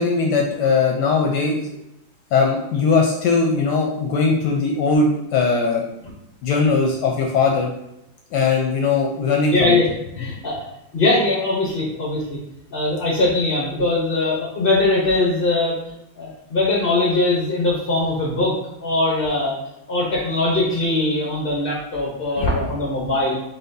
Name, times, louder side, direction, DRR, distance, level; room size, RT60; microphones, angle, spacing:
voice 1, 0.0-1.7 2.3-5.8 6.4-7.7 8.3-9.8, left 4 dB, 75° left, 0 dB, 1.1 m, -19 dB
voice 2, 9.5-10.6 10.9-12.4 12.7-15.7 16.2-18.5 18.8-19.5 19.9-23.4, left 2 dB, 50° left, -5 dB, 0.6 m, -21 dB
4.0 x 4.0 x 2.6 m, 0.86 s
omnidirectional pair, 2.0 m